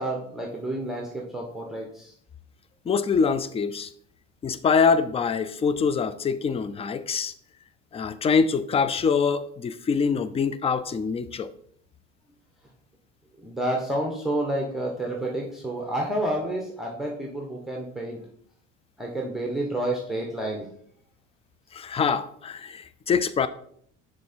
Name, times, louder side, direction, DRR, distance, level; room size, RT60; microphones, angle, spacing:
voice 1, 0.0-2.1 13.4-18.2 19.0-20.7, right 1 dB, ahead, 1.1 m, -29 dB
voice 2, 2.9-3.9 4.4-7.3 7.9-11.5 21.7-23.5, left 5 dB, 15° left, 0.4 m, -24 dB
6.3 x 3.7 x 4.3 m
hypercardioid pair, 75°, 37 cm